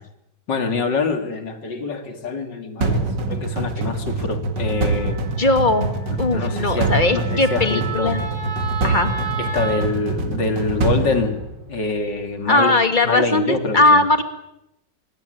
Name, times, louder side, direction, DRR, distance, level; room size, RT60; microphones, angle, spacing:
voice 1, 0.5-5.2 6.3-8.1 9.4-11.4 11.7-12.8 13.0-14.0, left 4 dB, 60° left, 7 dB, 3.2 m, -25 dB
sound 1, 2.8-12.0, right 3 dB, 60° right, 2.7 m, -25 dB
Wind instrument woodwind instrument, 4.6-9.8, right 5 dB, 20° right, 7.2 m, -33 dB
voice 2, 5.4-5.9 6.2-8.2 8.8-9.1 12.5-14.2, left 2 dB, 25° left, 8 dB, 2.3 m, -18 dB
25.0 x 23.0 x 9.3 m, 0.84 s
omnidirectional pair, 2.1 m